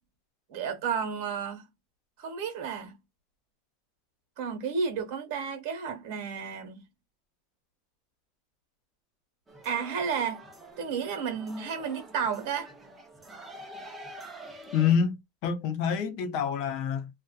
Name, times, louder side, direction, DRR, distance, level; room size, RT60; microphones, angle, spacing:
voice 1, 0.5-1.6 2.2-2.9 4.4-6.8 9.6-10.4 10.8-12.7, right 6 dB, 60° right, 1.1 m, -32 dB
sound 1, 9.5-14.9, right 1 dB, 10° right, 0.6 m, -47 dB
voice 2, 14.7-15.2 15.4-17.1, left 7 dB, 50° left, 0.6 m, -26 dB
2.5 x 2.2 x 2.2 m
supercardioid pair, 155°, 0 cm